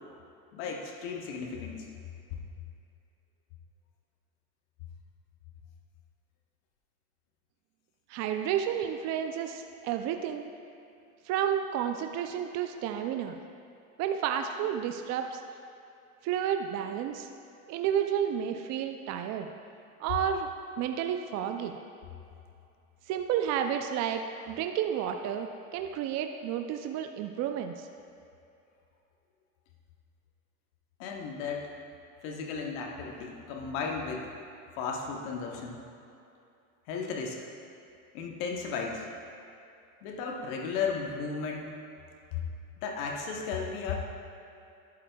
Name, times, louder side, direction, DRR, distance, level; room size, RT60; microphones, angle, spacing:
voice 1, 0.5-1.9 31.0-31.7 32.2-34.3 34.8-35.8 36.9-37.4 38.1-39.0 40.0-41.7 42.3-42.4 42.8-44.0, left 5 dB, 65° left, 1 dB, 1.1 m, -35 dB
voice 2, 8.1-10.5 11.3-13.4 14.0-15.4 16.2-17.3 17.7-19.5 20.0-20.5 20.8-21.8 23.1-27.9, right 9 dB, 40° right, 6 dB, 0.5 m, -31 dB
11.5 x 8.6 x 2.3 m, 2.6 s
hypercardioid pair, 95°, 43 cm